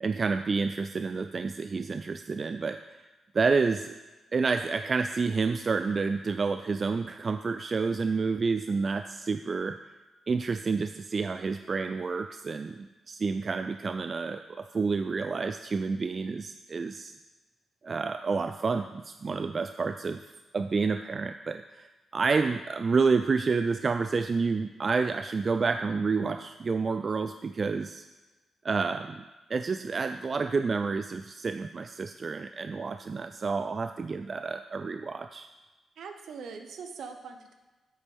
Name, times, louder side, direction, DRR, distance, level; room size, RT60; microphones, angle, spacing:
voice 1, 0.0-3.0 3.3-3.9 4.3-9.8 10.3-17.1 17.8-20.2 20.5-21.9 22.1-28.0 28.6-29.2 29.5-35.5, right 4 dB, 45° right, 8 dB, 0.3 m, -29 dB
voice 2, 36.0-37.6, right 5 dB, 75° right, 6 dB, 0.8 m, -42 dB
8.6 x 7.2 x 3.5 m, 1.2 s
supercardioid pair, 55°, 0 cm